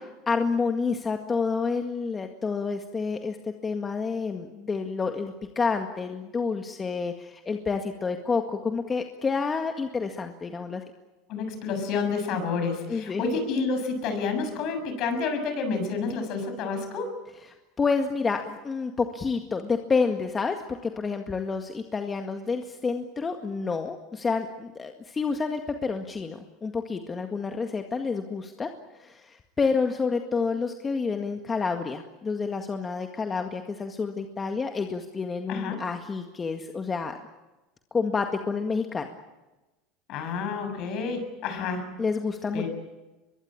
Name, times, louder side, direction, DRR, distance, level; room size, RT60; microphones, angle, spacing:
voice 1, 0.3-3.4 3.6-10.8 12.9-13.4 17.5-37.2 37.9-39.1 42.0-42.7, left 4 dB, 25° left, 5 dB, 1.9 m, -29 dB
voice 2, 11.3-17.1 35.5-35.8 40.1-41.9 42.5-42.7, left 4 dB, 55° left, 7 dB, 6.9 m, -29 dB
23.5 x 22.5 x 8.9 m, 1.1 s
hypercardioid pair, 90°, 0 cm